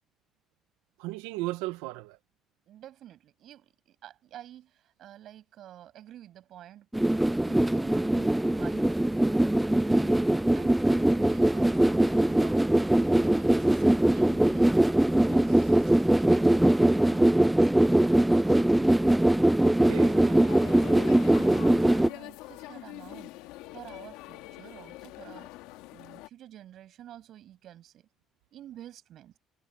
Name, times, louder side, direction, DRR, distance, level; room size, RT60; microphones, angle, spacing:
voice 1, 1.0-2.2 15.3-15.8 19.6-20.2, right 20 dB, 85° right, 0.9 m, -36 dB
voice 2, 2.7-9.1 9.9-10.2 10.5-12.7 13.1-14.7 15.8-17.2 18.3-19.0 20.0-23.3 23.7-25.5 25.9-28.1 28.5-29.3, right 12 dB, 65° right, 7.7 m, -49 dB
sound 1, 6.9-22.1, right 1 dB, 10° right, 0.3 m, -22 dB
sound 2, 20.1-26.3, left 18 dB, 85° left, 2.0 m, -44 dB
supercardioid pair, 70°, 0 cm